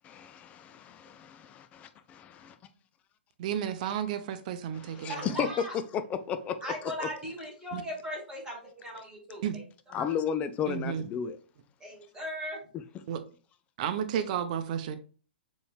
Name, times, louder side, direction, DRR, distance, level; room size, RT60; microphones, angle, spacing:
voice 1, 0.0-2.6 4.7-5.5 5.9-7.1 9.9-11.4, left 7 dB, 25° left, 0.4 m, -34 dB
voice 2, 3.4-5.4 7.7-7.8 9.4-9.6 10.7-11.1 13.1-13.2 13.8-15.0, right 9 dB, 45° right, 0.7 m, -32 dB
voice 3, 4.9-5.7 6.6-9.4 9.9-10.1 11.8-12.6, equal, 15° right, 2.3 m, -38 dB
6.9 x 3.1 x 2.3 m
figure-of-eight pair, 115°, 6 cm